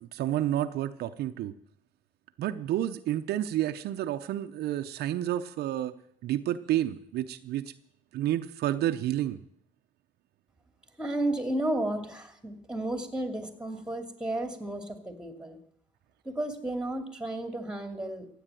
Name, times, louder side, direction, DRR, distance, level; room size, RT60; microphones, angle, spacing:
voice 1, 0.0-1.5 2.4-5.9 6.2-7.7 8.1-9.4, right 12 dB, 70° right, 8 dB, 0.7 m, -30 dB
voice 2, 11.0-15.6 16.2-18.3, right 1 dB, 5° right, 6 dB, 2.5 m, -33 dB
15.0 x 8.7 x 9.1 m, 0.68 s
cardioid pair, 110°, 17 cm